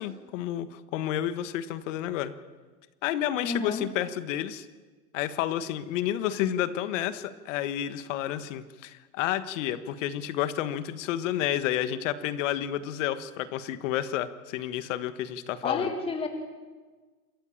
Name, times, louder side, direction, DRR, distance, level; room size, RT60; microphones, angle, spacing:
voice 1, 0.0-2.3 3.0-4.7 5.1-15.9, left 11 dB, 50° left, 12 dB, 1.5 m, -30 dB
voice 2, 3.4-3.9 15.6-16.3, left 4 dB, 10° left, 4 dB, 2.0 m, -30 dB
28.0 x 14.0 x 7.3 m, 1.4 s
hypercardioid pair, 130°, 48 cm